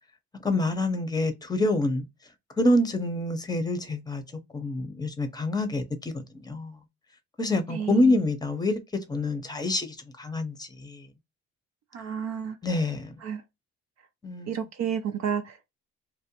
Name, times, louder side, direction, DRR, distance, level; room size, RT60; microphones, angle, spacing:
voice 1, 0.4-2.0 2.6-4.2 4.5-6.7 7.4-11.1 12.6-13.1 14.2-14.7, left 2 dB, 15° left, 0.7 m, -27 dB
voice 2, 7.7-8.2 11.9-12.6 13.2-13.4 14.5-15.7, right 8 dB, 60° right, 0.5 m, -31 dB
2.6 x 2.1 x 2.8 m
cardioid pair, 90°, 30 cm